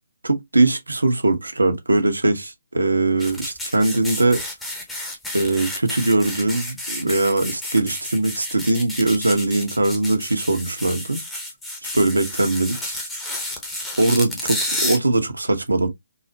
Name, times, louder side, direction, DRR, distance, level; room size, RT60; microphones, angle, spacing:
voice 1, 0.2-4.4 5.3-11.2 11.9-13.0 14.0-15.9, right 2 dB, 85° right, 0.9 m, -21 dB
sound 1, 3.2-15.0, left 1 dB, 5° left, 0.8 m, -31 dB
3.9 x 2.1 x 2.7 m
figure-of-eight pair, 145°, 0 cm